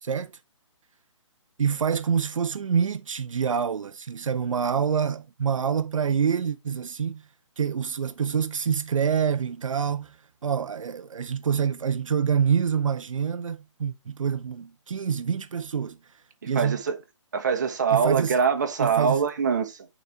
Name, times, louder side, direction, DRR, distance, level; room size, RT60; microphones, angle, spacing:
voice 1, 0.0-0.3 1.6-7.2 7.6-10.2 10.4-16.0 16.5-16.8 17.9-18.4 18.8-19.2, right 7 dB, 80° right, 0.5 m, -26 dB
voice 2, 16.4-17.0 17.3-19.9, right 6 dB, 35° right, 1.0 m, -24 dB
9.1 x 4.1 x 3.2 m
hypercardioid pair, 175°, 16 cm